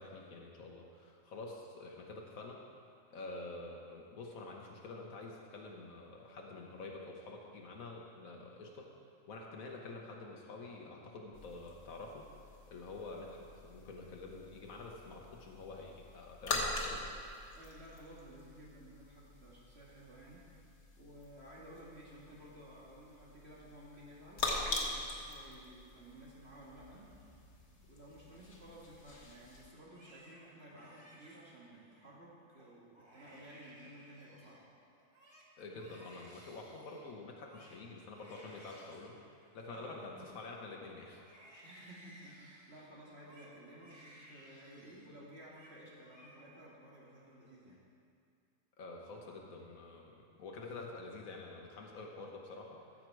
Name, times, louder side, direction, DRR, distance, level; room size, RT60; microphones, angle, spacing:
voice 1, 0.0-2.6 3.1-8.9 9.3-12.3 12.7-17.2 35.6-39.2 39.5-41.2 48.8-52.8, left 3 dB, 85° left, 0 dB, 1.4 m, -48 dB
sound 1, 11.3-29.7, left 2 dB, 55° left, 1.5 m, -44 dB
voice 2, 17.5-27.1 27.8-34.6 39.7-40.3 41.6-47.8, right 1 dB, 50° right, -6 dB, 2.0 m, -54 dB
Crying sobbing, 29.8-32.0 32.5-32.7 32.9-34.7 35.0-40.7 41.1-45.1 45.4-45.8 46.0-46.7 47.1-47.7, right 1 dB, 20° right, 1.3 m, -60 dB
14.0 x 7.2 x 4.6 m, 2.3 s
omnidirectional pair, 1.4 m